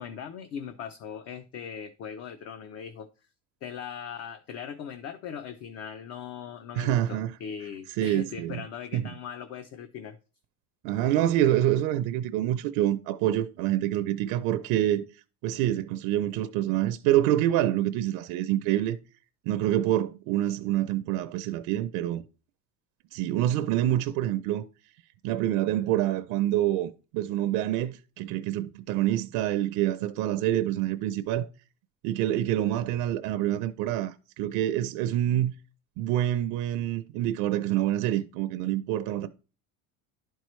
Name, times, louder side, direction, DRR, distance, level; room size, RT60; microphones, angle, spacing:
voice 1, 0.0-3.1 3.6-10.2, left 7 dB, 45° left, 0.6 m, -39 dB
voice 2, 6.7-7.3 8.0-8.6 8.9-9.1 10.8-15.0 15.4-19.0 19.5-22.2 23.1-24.6 25.2-31.5 32.0-35.5 36.0-39.3, right 13 dB, 80° right, 0.6 m, -26 dB
11.0 x 4.5 x 3.1 m
cardioid pair, 160°, 35 cm